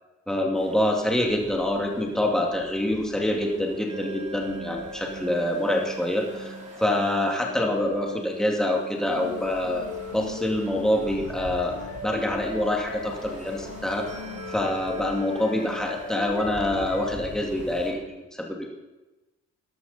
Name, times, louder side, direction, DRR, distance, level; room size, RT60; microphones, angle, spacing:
voice 1, 0.3-9.9 10.1-11.8 12.0-14.1 14.5-18.7, left 1 dB, ahead, 0 dB, 2.1 m, -26 dB
sound 1, 0.5-17.9, right 1 dB, 25° right, 3.0 m, -46 dB
sound 2, 3.9-16.9, right 1 dB, 50° right, 4.2 m, -43 dB
sound 3, 9.1-17.1, left 4 dB, 85° left, 2.2 m, -38 dB
13.5 x 11.0 x 4.1 m, 1.1 s
cardioid pair, 90°, 30 cm